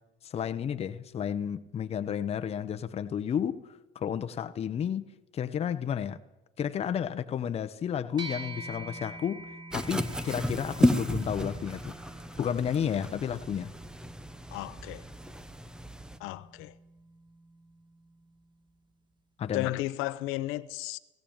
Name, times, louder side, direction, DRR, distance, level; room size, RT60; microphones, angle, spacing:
voice 1, 0.2-6.2 6.6-9.4 9.7-11.9 12.4-13.7 19.4-19.7, left 8 dB, 30° left, 0.9 m, -32 dB
sound 1, 8.2-17.8, right 2 dB, 20° right, 2.2 m, -46 dB
sound 2, 9.7-16.2, equal, 5° right, 0.8 m, -32 dB
voice 2, 14.5-15.0 16.2-16.7 19.5-21.0, left 17 dB, 80° left, 0.9 m, -34 dB
17.5 x 17.5 x 8.9 m
cardioid pair, 160°, 21 cm